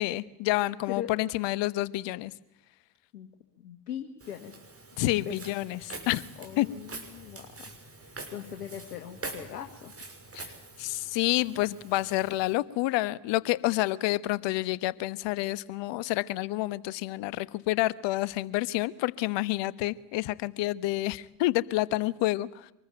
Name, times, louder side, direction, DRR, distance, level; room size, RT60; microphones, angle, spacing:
voice 1, 0.0-2.3 5.0-6.2 6.6-6.7 10.3-10.5 10.8-22.7, left 17 dB, 65° left, 18 dB, 1.2 m, -29 dB
voice 2, 3.1-4.6 5.1-5.4 6.4-7.7 8.0-9.9, left 10 dB, 80° left, 5 dB, 2.0 m, -40 dB
Walk footsteps, 4.2-12.5, right 3 dB, 30° right, 6.6 m, -45 dB
26.0 x 20.5 x 9.1 m, 0.84 s
hypercardioid pair, 55°, 47 cm